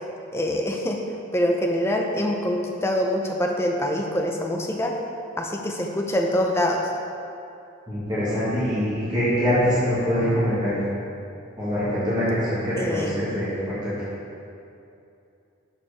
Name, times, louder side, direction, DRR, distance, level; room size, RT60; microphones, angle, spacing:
voice 1, 0.3-1.0 1.3-5.0 5.4-6.8 12.8-13.2, left 1 dB, 10° left, 1 dB, 0.5 m, -24 dB
voice 2, 7.9-10.8 11.6-14.1, equal, 20° right, -11 dB, 1.7 m, -24 dB
7.0 x 4.4 x 4.8 m, 2.7 s
head